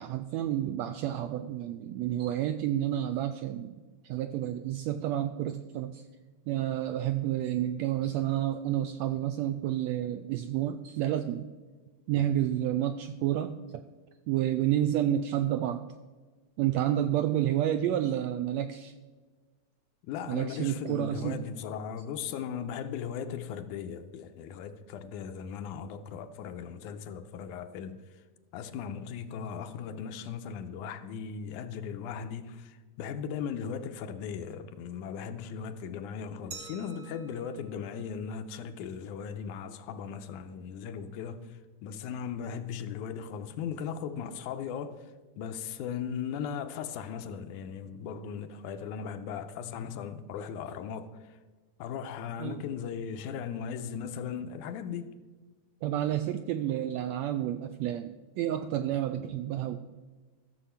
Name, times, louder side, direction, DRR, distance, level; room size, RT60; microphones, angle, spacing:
voice 1, 0.0-3.8 4.0-6.0 6.5-11.5 12.1-13.8 14.3-15.8 16.6-18.9 20.3-21.4 52.4-52.6 55.8-59.8, right 12 dB, 85° right, 1.5 m, -30 dB
voice 2, 20.1-28.0 28.5-45.0 45.4-51.4 51.8-55.1, left 7 dB, 85° left, 2.2 m, -38 dB
Glass, 36.5-39.2, right 6 dB, 70° right, 1.2 m, -49 dB
14.0 x 7.1 x 5.6 m
omnidirectional pair, 3.6 m